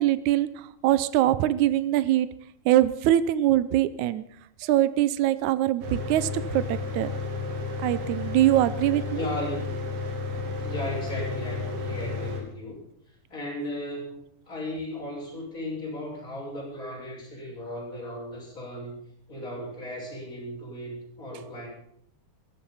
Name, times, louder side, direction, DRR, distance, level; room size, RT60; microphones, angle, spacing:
voice 1, 0.0-2.3 2.6-4.2 4.6-7.1 7.8-9.0, right 13 dB, 85° right, 15 dB, 1.7 m, -23 dB
Mechanical fan, 5.8-12.4, left 4 dB, 65° right, 4.2 m, -32 dB
voice 2, 9.1-9.7 10.6-12.8 13.3-19.0 19.3-21.7, left 1 dB, 20° left, -3 dB, 7.2 m, -36 dB
16.5 x 15.0 x 5.6 m, 0.65 s
omnidirectional pair, 4.4 m